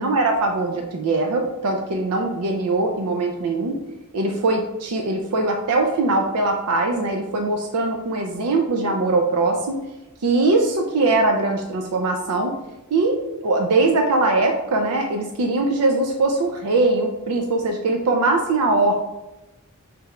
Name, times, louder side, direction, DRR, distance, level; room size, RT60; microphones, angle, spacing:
voice 1, 0.0-3.8 4.1-9.8 10.2-12.5 12.9-13.2 13.4-18.9, right 2 dB, 90° right, 3 dB, 0.5 m, -21 dB
3.4 x 3.1 x 4.8 m, 1.0 s
head